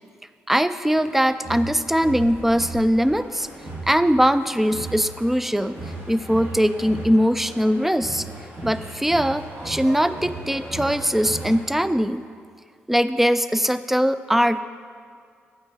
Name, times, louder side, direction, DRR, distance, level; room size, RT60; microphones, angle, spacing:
voice 1, 0.5-3.5 3.9-5.8 6.1-8.3 8.6-12.2 12.9-14.6, equal, 5° right, 13 dB, 0.4 m, -21 dB
sound 1, 0.9-11.6, right 2 dB, 40° right, 2.3 m, -36 dB
8.4 x 4.7 x 6.3 m, 2.1 s
hypercardioid pair, 45°, 5 cm